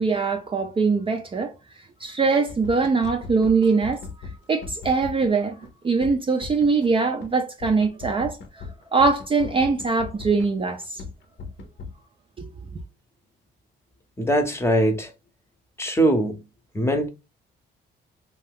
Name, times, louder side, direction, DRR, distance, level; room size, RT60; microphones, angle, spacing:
voice 1, 0.0-1.5 2.0-4.0 4.5-5.6 5.8-8.6 8.9-11.0 12.4-12.5, right 4 dB, 25° right, 0.4 m, -22 dB
sound 1, 2.5-5.3 5.6-5.7 6.0-6.9 7.2-7.3 7.6-10.5 10.8-11.9, left 4 dB, 65° left, 0.7 m, -38 dB
voice 2, 14.2-15.1 15.8-16.4 16.7-17.1, right 1 dB, 15° left, 0.7 m, -21 dB
2.6 x 2.3 x 3.4 m
cardioid pair, 90°, 20 cm